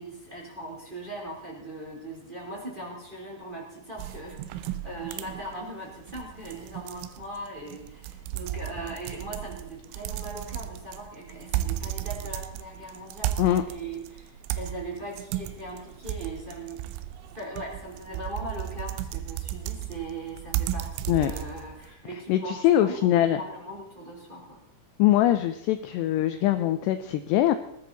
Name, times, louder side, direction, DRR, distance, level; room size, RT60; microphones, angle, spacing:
voice 1, 0.0-17.0 17.3-24.6, right 1 dB, 10° right, -2 dB, 3.0 m, -39 dB
sound 1, 4.0-21.9, right 13 dB, 90° right, 3.4 m, -35 dB
voice 2, 22.3-23.4 25.0-27.6, left 13 dB, 85° left, 10 dB, 2.4 m, -22 dB
19.5 x 13.0 x 4.1 m, 0.78 s
omnidirectional pair, 5.7 m